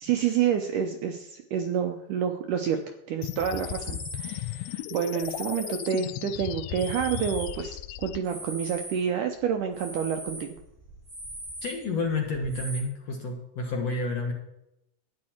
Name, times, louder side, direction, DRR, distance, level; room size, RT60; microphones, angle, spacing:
voice 1, 0.0-2.8 3.1-10.5, right 8 dB, 75° right, 5 dB, 1.9 m, -28 dB
sound 1, 3.2-8.2, left 14 dB, 90° left, 2.5 m, -36 dB
sound 2, 3.5-4.4 5.1-6.2 6.6-9.1 9.4-12.8, right 1 dB, 5° right, 2.4 m, -41 dB
voice 2, 11.6-14.3, left 2 dB, 55° left, 1 dB, 2.0 m, -30 dB
13.0 x 9.7 x 4.4 m, 0.83 s
omnidirectional pair, 4.4 m